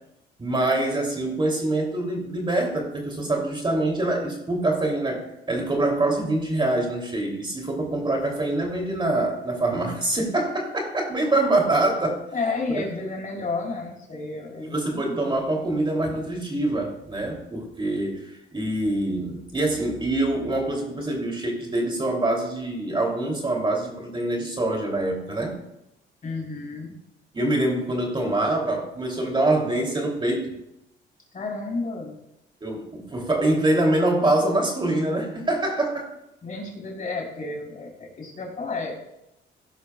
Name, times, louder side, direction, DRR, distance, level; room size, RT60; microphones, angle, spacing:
voice 1, 0.4-12.2 12.7-12.9 14.6-25.5 27.3-30.5 32.6-36.1, right 2 dB, 25° right, 0 dB, 3.1 m, -25 dB
voice 2, 12.3-15.3 26.2-27.0 31.3-32.2 36.4-38.9, left 3 dB, 40° left, -1 dB, 4.3 m, -31 dB
16.0 x 11.0 x 2.4 m, 0.83 s
cardioid pair, 90°, 20 cm